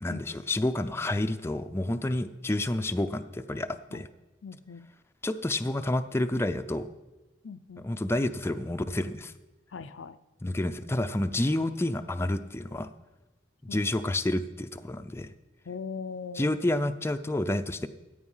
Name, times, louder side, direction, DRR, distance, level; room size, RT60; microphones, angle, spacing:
voice 1, 0.0-4.1 5.2-6.9 7.8-9.3 10.4-12.9 13.7-15.3 16.4-17.9, left 1 dB, 15° left, 8 dB, 0.4 m, -29 dB
voice 2, 4.4-4.9 7.4-7.8 9.7-10.2 10.4-10.6 13.7-13.9 15.7-16.5, left 5 dB, 85° left, 11 dB, 0.6 m, -40 dB
14.5 x 8.8 x 5.6 m, 1.1 s
head